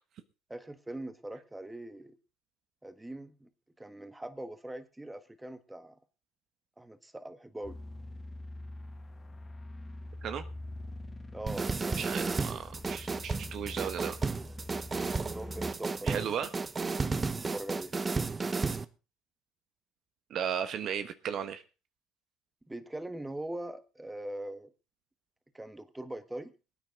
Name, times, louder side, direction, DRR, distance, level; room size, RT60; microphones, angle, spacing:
voice 1, 0.5-2.2 2.8-3.5 3.8-6.0 6.8-7.8 11.3-12.5 15.2-16.5 16.9-17.9 22.7-24.7 25.5-26.5, right 1 dB, 10° right, 11 dB, 1.6 m, -42 dB
sound 1, 7.6-15.7, left 1 dB, 25° left, 1.9 m, -45 dB
sound 2, 11.5-18.9, right 4 dB, 30° right, 1.0 m, -33 dB
voice 2, 12.0-14.2 16.0-16.5 20.3-21.6, right 8 dB, 55° right, 10 dB, 1.3 m, -35 dB
20.5 x 9.5 x 3.8 m, 0.32 s
hypercardioid pair, 60°, 0 cm